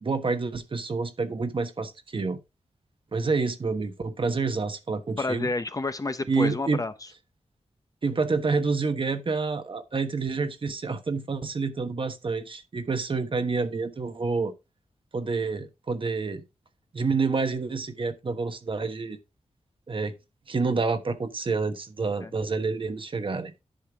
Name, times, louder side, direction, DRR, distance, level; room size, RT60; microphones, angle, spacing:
voice 1, 0.0-2.4 3.1-5.5 6.3-6.8 8.0-14.5 15.1-16.4 16.9-19.2 19.9-20.1 20.5-23.5, right 4 dB, 50° right, 1.2 m, -28 dB
voice 2, 5.2-6.9 22.2-22.3, left 3 dB, 30° left, 0.7 m, -29 dB
10.5 x 5.5 x 3.5 m
wide cardioid pair, 75°, 12 cm